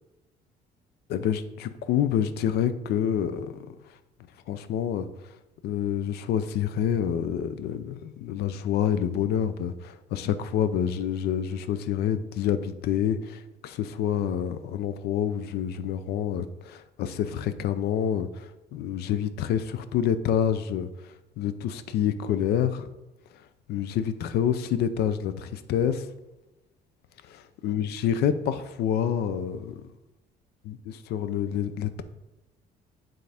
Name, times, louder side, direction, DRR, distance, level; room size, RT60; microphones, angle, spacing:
voice 1, 1.1-3.6 4.5-5.1 5.6-20.9 21.4-22.9 23.7-26.1 27.6-29.8 30.6-32.0, left 9 dB, 75° left, 12 dB, 0.5 m, -27 dB
9.2 x 3.8 x 3.5 m, 1.0 s
cardioid pair, 110°, 17 cm